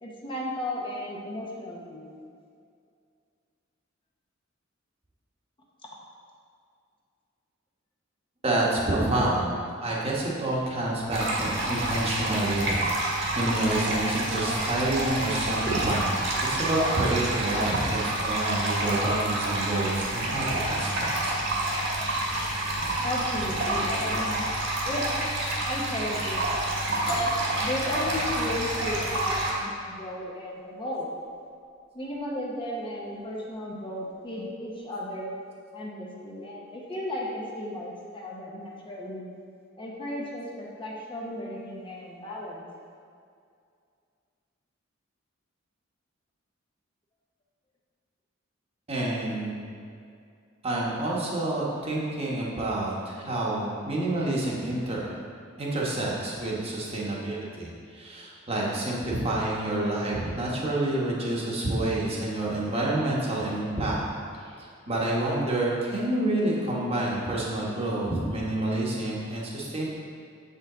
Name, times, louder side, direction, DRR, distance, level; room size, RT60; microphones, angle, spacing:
voice 1, 0.0-2.1 23.0-24.4 24.9-25.1 25.6-26.5 27.6-31.1 31.9-35.3 35.7-39.3 39.8-42.6, left 1 dB, 25° left, -3 dB, 0.8 m, -34 dB
voice 2, 8.4-9.5 9.8-21.1 48.9-49.7 50.6-55.1 55.6-64.0 64.9-69.9, right 1 dB, 30° right, -4 dB, 1.1 m, -28 dB
sound 1, 11.1-29.5, right 1 dB, 60° right, 1.5 m, -28 dB
sound 2, 27.1-34.7, equal, 50° left, 1.3 m, -38 dB
7.1 x 5.5 x 3.8 m, 2.3 s
head